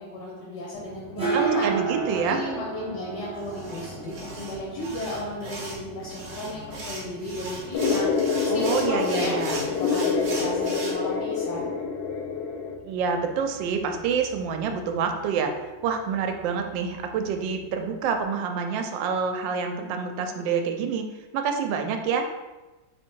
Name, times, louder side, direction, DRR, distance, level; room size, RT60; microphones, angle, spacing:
voice 1, 0.0-1.7 2.3-8.1 8.4-11.7, left 1 dB, 70° left, -4 dB, 1.4 m, -34 dB
sound 1, 0.7-18.2, right 5 dB, 10° right, 0.4 m, -37 dB
voice 2, 1.2-2.4 8.5-9.7 12.8-15.6 15.8-21.1 21.3-22.3, right 6 dB, 85° right, 5 dB, 1.3 m, -27 dB
sound 2, 3.4-10.9, right 2 dB, 55° right, 0.9 m, -38 dB
sound 3, 7.7-12.7, left 5 dB, 90° left, 1.3 m, -26 dB
3.5 x 3.2 x 4.4 m, 1.1 s
omnidirectional pair, 2.0 m